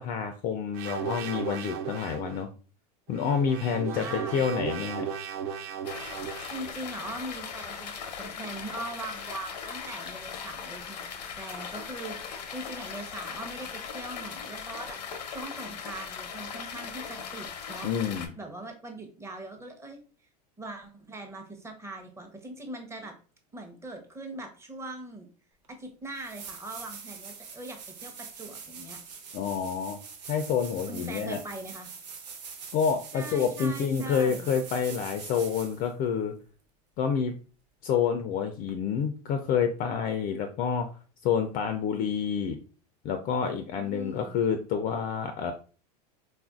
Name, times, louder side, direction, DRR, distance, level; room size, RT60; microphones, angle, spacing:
voice 1, 0.0-2.5 3.1-5.1 17.8-18.3 29.3-30.0 30.3-31.4 32.7-36.3 37.0-37.4 37.8-40.9 41.2-42.6 43.0-45.5, left 7 dB, 40° left, 7 dB, 0.4 m, -28 dB
sound 1, 0.7-2.4 3.1-6.8, right 8 dB, 55° right, 0.5 m, -36 dB
voice 2, 3.9-4.4 6.5-17.9 18.4-20.0 20.6-23.1 23.5-25.3 25.7-29.0 30.8-31.9 33.1-34.5 43.8-44.4, right 2 dB, 15° right, 4 dB, 0.8 m, -41 dB
sound 2, 5.8-18.3, left 6 dB, 85° left, 0.6 m, -39 dB
sound 3, 25.6-25.7 26.1-35.9 38.7-38.8, right 5 dB, 85° right, 0.8 m, -44 dB
3.6 x 2.5 x 2.3 m, 0.38 s
hypercardioid pair, 100°, 21 cm